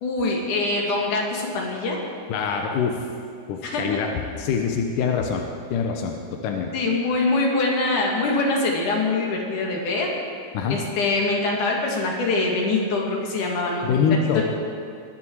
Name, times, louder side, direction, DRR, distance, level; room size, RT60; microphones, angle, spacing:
voice 1, 0.0-2.0 3.6-3.8 6.7-10.1 10.7-14.2, left 3 dB, 50° left, -1 dB, 3.3 m, -24 dB
voice 2, 2.3-3.1 3.5-4.1 4.4-5.4 5.7-6.7 10.5-10.8 13.8-14.4, left 6 dB, 75° left, 3 dB, 1.9 m, -24 dB
21.0 x 13.5 x 4.7 m, 2.3 s
omnidirectional pair, 5.1 m